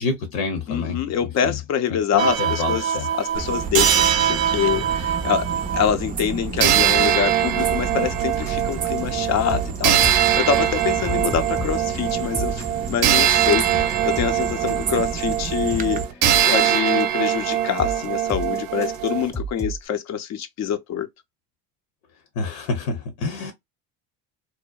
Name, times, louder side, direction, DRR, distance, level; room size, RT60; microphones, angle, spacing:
voice 1, 0.0-1.6 1.9-3.1 22.4-23.5, left 4 dB, 75° left, 0.8 m, -28 dB
voice 2, 0.7-2.8 3.2-5.4 5.7-12.6 12.9-16.0 16.5-21.1, left 8 dB, 45° left, 0.5 m, -25 dB
sound 1, 2.2-5.9 6.6-19.3, right 11 dB, 80° right, 0.5 m, -22 dB
sound 2, 3.3-16.0, right 5 dB, 25° right, 0.4 m, -31 dB
sound 3, 8.1-19.9, right 1 dB, 5° left, 0.8 m, -34 dB
2.7 x 2.0 x 2.2 m
supercardioid pair, 100°, 39 cm